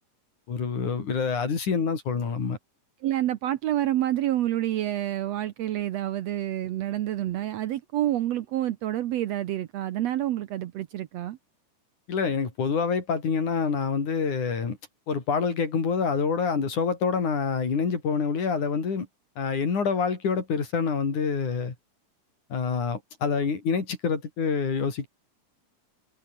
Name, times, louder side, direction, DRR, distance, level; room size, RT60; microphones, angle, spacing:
voice 1, 0.5-2.6 12.1-14.8 15.1-19.1 19.4-21.7 22.5-25.1, left 5 dB, 70° left, 5.6 m, -26 dB
voice 2, 3.0-11.4, right 13 dB, 70° right, 1.7 m, -28 dB
omnidirectional pair, 3.7 m